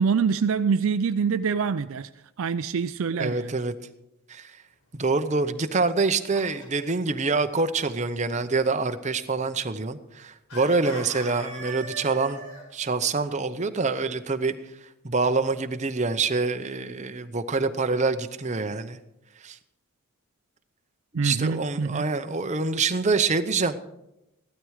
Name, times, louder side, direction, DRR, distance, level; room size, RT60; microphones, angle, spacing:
voice 1, 0.0-2.1 2.4-3.5 21.1-22.1, right 5 dB, 60° right, 11 dB, 0.4 m, -25 dB
voice 2, 3.2-3.7 4.3-4.5 4.9-12.4 12.7-14.5 15.0-19.0 19.4-19.6 21.1-23.8, right 4 dB, 30° right, 9 dB, 0.7 m, -26 dB
Chicken rooster, 6.1-7.1 10.5-12.6, right 2 dB, 80° left, 4.8 m, -40 dB
15.0 x 12.5 x 4.8 m, 0.89 s
head